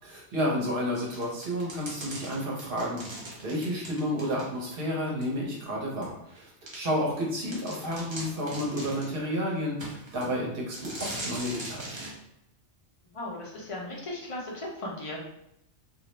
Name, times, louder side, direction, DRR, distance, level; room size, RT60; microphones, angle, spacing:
voice 1, 0.0-3.0 3.4-12.1, equal, 55° right, -3 dB, 0.8 m, -31 dB
sound 1, 1.1-4.8 5.2-5.3 6.0-6.1 6.7-6.8 7.2-7.3 7.5-9.2 9.8-10.3 10.7-12.2, right 1 dB, 40° right, 0.4 m, -40 dB
voice 2, 13.1-15.2, left 1 dB, 40° left, -3 dB, 0.5 m, -37 dB
2.4 x 2.1 x 2.9 m, 0.76 s
omnidirectional pair, 1.2 m